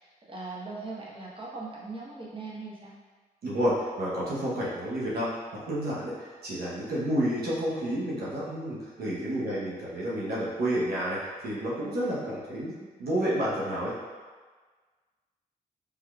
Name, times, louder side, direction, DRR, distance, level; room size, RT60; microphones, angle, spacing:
voice 1, 0.0-2.9 9.4-9.7, right 3 dB, 35° right, -6 dB, 0.9 m, -40 dB
voice 2, 3.4-5.3 5.7-13.9, equal, 80° right, -8 dB, 0.9 m, -30 dB
3.5 x 3.0 x 2.3 m, 1.4 s
cardioid pair, 50°, 16 cm